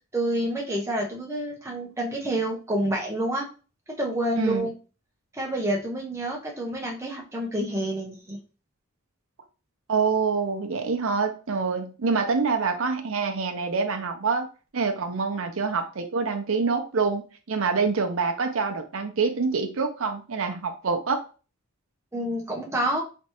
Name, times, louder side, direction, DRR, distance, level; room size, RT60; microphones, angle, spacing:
voice 1, 0.1-3.5 3.9-4.7 5.3-8.4 22.1-23.0, right 1 dB, 15° right, -2 dB, 0.8 m, -28 dB
voice 2, 4.4-4.7 9.9-14.5 14.7-21.2, right 4 dB, 70° right, 5 dB, 0.6 m, -26 dB
3.3 x 3.1 x 3.0 m, 0.35 s
head